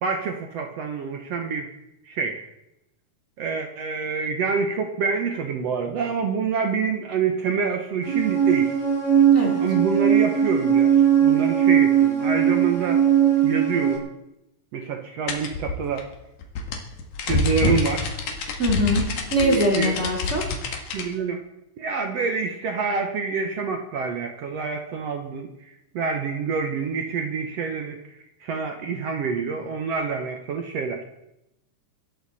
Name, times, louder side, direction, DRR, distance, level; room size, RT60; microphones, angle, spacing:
voice 1, 0.0-1.7 2.1-2.4 3.4-8.7 9.6-13.0 13.4-14.0 14.7-16.1 17.3-18.1 19.4-20.1 20.9-21.4 21.8-31.0, right 5 dB, 65° right, 5 dB, 2.0 m, -27 dB
sound 1, 8.1-14.0, right 9 dB, 45° left, 5.6 m, -19 dB
sound 2, 15.3-21.1, left 3 dB, 80° left, 3.3 m, -27 dB
voice 2, 18.6-19.0 19.3-20.4, equal, 25° right, 0 dB, 2.6 m, -22 dB
24.0 x 12.5 x 4.2 m, 0.87 s
omnidirectional pair, 3.6 m